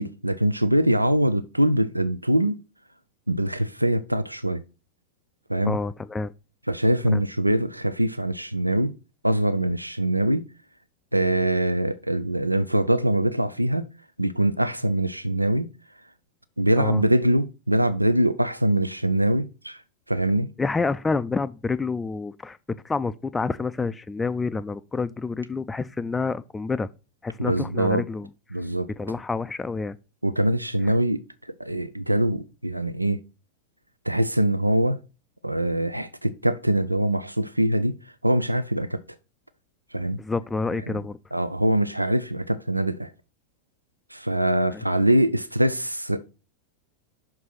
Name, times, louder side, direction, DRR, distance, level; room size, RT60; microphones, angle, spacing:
voice 1, 0.0-2.6 3.3-4.6 5.5-5.8 6.7-8.9 9.2-10.4 11.1-13.8 14.2-15.7 16.6-19.8 20.1-20.5 27.4-28.0 28.5-28.9 30.2-31.2 31.6-33.2 34.1-35.0 35.4-37.9 38.2-39.0 39.9-40.2 40.9-41.0 41.3-43.1 44.1-46.3, right 1 dB, 85° right, 0.4 m, -23 dB
voice 2, 5.6-6.3 7.1-7.2 16.8-17.0 20.6-22.6 22.8-26.9 27.2-28.3 29.0-30.0 40.2-41.2 44.7-44.8, left 4 dB, 10° left, 0.4 m, -28 dB
6.0 x 4.6 x 5.7 m
figure-of-eight pair, 90°, 0 cm